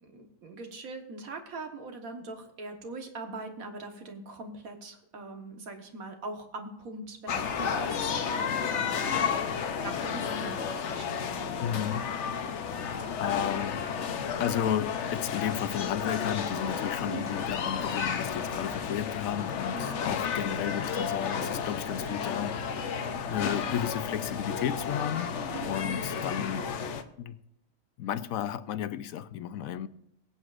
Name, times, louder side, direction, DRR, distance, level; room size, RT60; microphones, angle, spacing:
voice 1, 0.0-11.8 17.0-17.3 19.7-20.0 25.5-25.7, right 3 dB, 85° right, 1.7 m, -42 dB
sound 1, 7.3-27.0, left 6 dB, 60° left, 1.0 m, -32 dB
voice 2, 11.6-12.1 12.5-12.7 13.2-13.8 14.4-22.7 23.3-25.3 25.7-26.6 27.2-27.4 28.0-29.9, left 10 dB, 85° left, 1.1 m, -33 dB
22.5 x 8.0 x 2.5 m
omnidirectional pair, 1.4 m